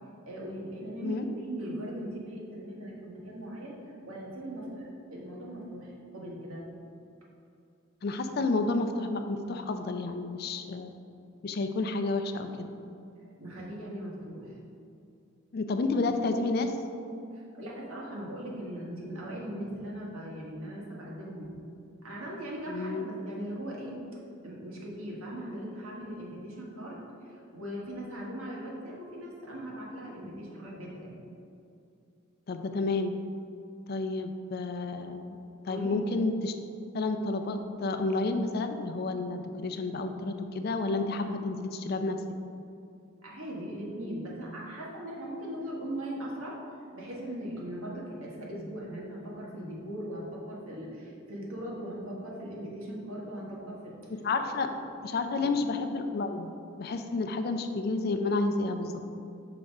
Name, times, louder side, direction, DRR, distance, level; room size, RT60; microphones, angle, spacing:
voice 1, 0.3-6.7 13.4-14.6 17.3-21.5 22.0-24.1 24.4-27.0 27.3-31.1 35.7-36.0 43.2-46.6 46.9-54.0 55.3-55.5, right 1 dB, 80° right, -4 dB, 1.4 m, -39 dB
voice 2, 8.0-10.9 11.4-12.7 15.5-16.7 22.7-23.1 32.5-33.1 33.9-35.4 35.6-36.5 36.9-42.2 54.1-54.7 55.0-56.5 56.8-59.0, left 3 dB, 45° left, 7 dB, 0.4 m, -30 dB
5.7 x 3.6 x 5.2 m, 2.6 s
head